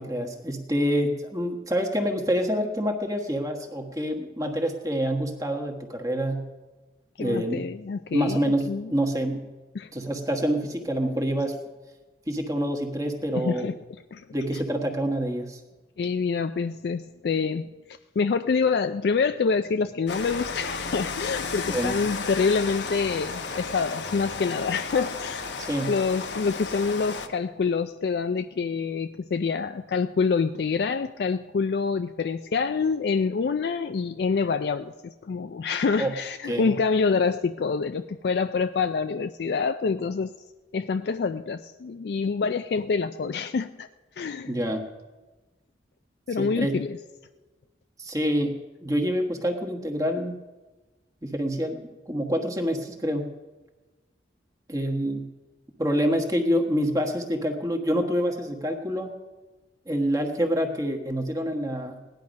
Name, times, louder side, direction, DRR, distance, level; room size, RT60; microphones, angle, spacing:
voice 1, 0.0-6.5 7.2-7.7 8.1-9.5 9.9-11.6 12.3-13.7 14.3-15.6 21.7-22.0 25.6-25.9 36.0-36.1 36.5-36.7 44.5-44.8 46.4-46.8 48.0-50.3 51.2-53.3 54.7-55.3 55.8-59.1 59.9-62.0, equal, 20° right, 3 dB, 1.3 m, -27 dB
voice 2, 7.2-8.8 9.8-9.9 13.3-13.7 14.1-14.2 14.5-14.6 16.0-17.7 18.2-25.4 25.9-40.3 40.7-43.9 44.2-44.6 46.3-47.0, left 5 dB, 60° left, 9 dB, 0.4 m, -26 dB
Rain, 20.1-27.3, left 4 dB, 80° left, 1.0 m, -33 dB
17.5 x 10.5 x 5.2 m, 1.2 s
head